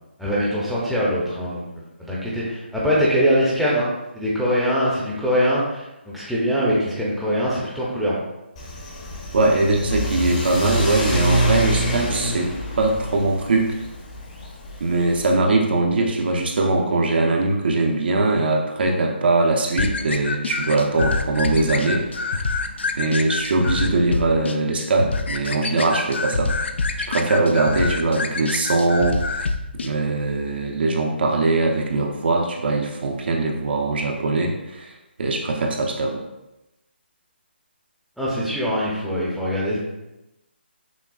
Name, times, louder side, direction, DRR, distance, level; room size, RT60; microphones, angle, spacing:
voice 1, 0.2-1.6 2.0-8.2 38.2-39.8, equal, ahead, -8 dB, 0.6 m, -22 dB
Car / Accelerating revving vroom, 8.6-15.3, equal, 35° left, 0.8 m, -26 dB
voice 2, 9.3-13.8 14.8-22.3 23.0-26.5 27.0-29.4 29.8-34.9 35.2-36.2, right 2 dB, 55° right, 1 dB, 0.7 m, -21 dB
sound 1, 19.8-29.9, left 3 dB, 70° left, 0.4 m, -26 dB
6.0 x 2.3 x 2.4 m, 0.95 s
figure-of-eight pair, 155°, 6 cm